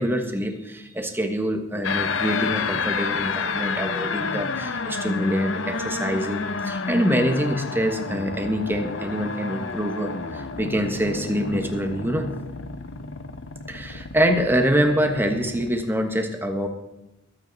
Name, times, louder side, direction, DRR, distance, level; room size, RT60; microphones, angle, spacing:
voice 1, 0.0-12.3 13.7-16.7, equal, 10° right, 5 dB, 1.3 m, -25 dB
sound 1, 1.8-15.8, left 4 dB, 75° left, 0.8 m, -30 dB
21.5 x 9.0 x 4.1 m, 0.93 s
head